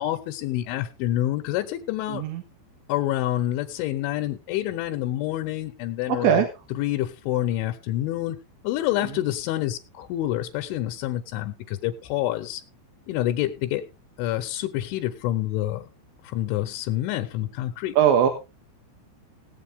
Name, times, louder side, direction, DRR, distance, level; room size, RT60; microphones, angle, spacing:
voice 1, 0.0-2.3 2.9-6.4 6.8-8.4 8.6-12.6 13.1-13.9 14.2-15.9 16.2-17.9, left 14 dB, 85° left, 5 dB, 3.4 m, -27 dB
voice 2, 2.1-2.4 6.1-6.5 9.0-9.2 17.9-18.3, right 8 dB, 75° right, 5 dB, 3.6 m, -20 dB
18.0 x 8.4 x 3.6 m, 0.29 s
omnidirectional pair, 5.4 m